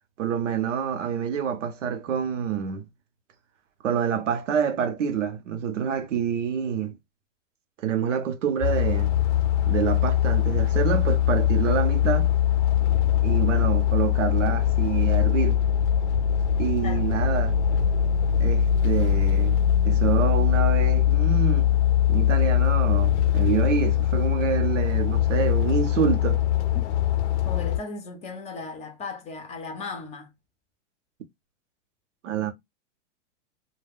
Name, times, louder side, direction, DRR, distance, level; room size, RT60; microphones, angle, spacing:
voice 1, 0.2-2.9 3.8-6.9 7.8-9.1 9.7-12.3 13.2-15.6 16.6-17.6 18.4-19.6 19.8-21.7 22.1-26.4 32.2-32.5, right 8 dB, 90° right, 0.8 m, -27 dB
sound 1, 8.6-27.8, left 10 dB, 70° left, 0.5 m, -22 dB
voice 2, 27.4-30.3, left 4 dB, 20° left, 0.5 m, -36 dB
2.3 x 2.2 x 3.4 m
hypercardioid pair, 140°, 36 cm